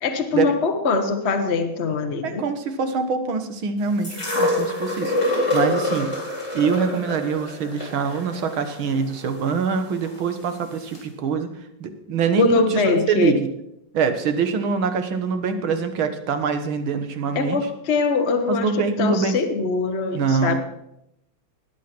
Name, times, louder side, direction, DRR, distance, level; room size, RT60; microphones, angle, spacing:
voice 1, 0.0-2.4 12.4-13.3 17.3-20.6, left 4 dB, 40° left, 6 dB, 1.1 m, -22 dB
voice 2, 2.2-6.1 6.5-11.5 11.8-13.5 13.9-17.6 18.5-19.4 20.1-20.6, right 5 dB, 75° right, 8 dB, 2.1 m, -24 dB
sound 1, 4.0-10.1 10.9-11.0, left 1 dB, 15° left, 4.1 m, -26 dB
19.5 x 8.4 x 6.0 m, 0.82 s
omnidirectional pair, 2.3 m